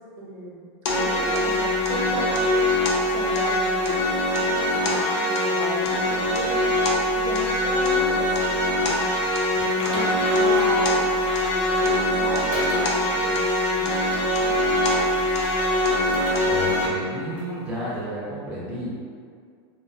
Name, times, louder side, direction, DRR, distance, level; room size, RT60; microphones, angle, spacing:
voice 1, 0.2-0.7 0.9-9.0 9.5-14.1 14.4-14.8, right 1 dB, 80° right, -3 dB, 0.7 m, -35 dB
sound 1, 0.9-16.9, left 1 dB, 90° left, 0.5 m, -23 dB
Typing, 9.6-11.9 12.5-12.8 13.4-13.5 14.0-15.8 16.1-16.3 16.7-16.8 17.4-17.5, left 1 dB, 35° left, 0.7 m, -36 dB
voice 2, 16.5-18.9, equal, 10° right, -8 dB, 0.4 m, -31 dB
2.4 x 2.1 x 2.6 m, 2.1 s
supercardioid pair, 165°, 14 cm